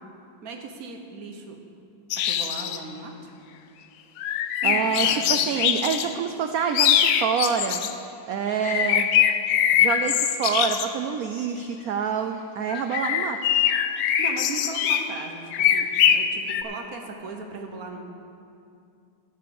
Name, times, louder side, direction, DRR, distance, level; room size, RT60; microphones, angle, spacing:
voice 1, 0.4-1.6 2.2-3.1 4.6-5.4 14.2-18.0, right 3 dB, 50° right, 3 dB, 1.4 m, -37 dB
sound 1, 2.1-2.8 4.2-6.1 6.7-7.9 8.6-10.9 12.7-15.1 15.5-16.6, left 9 dB, 80° left, 1.4 m, -22 dB
voice 2, 4.6-7.9 8.3-9.1 9.7-13.4, right 7 dB, 90° right, 6 dB, 0.7 m, -27 dB
16.5 x 5.6 x 7.0 m, 2.6 s
omnidirectional pair, 2.2 m